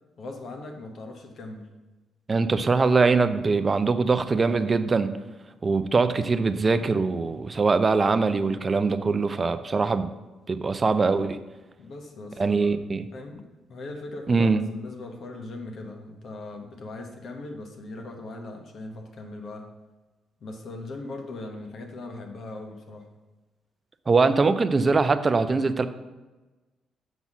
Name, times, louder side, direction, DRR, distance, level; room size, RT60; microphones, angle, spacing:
voice 1, 0.2-1.7 11.8-12.7 13.1-19.7 20.4-23.1, left 2 dB, 60° left, 3 dB, 1.1 m, -39 dB
voice 2, 2.3-5.2 5.6-10.1 10.5-11.4 12.4-13.1 14.3-14.6 24.1-25.9, right 4 dB, 30° right, 10 dB, 0.5 m, -22 dB
7.1 x 4.1 x 6.0 m, 1.2 s
cardioid pair, 90°, 0 cm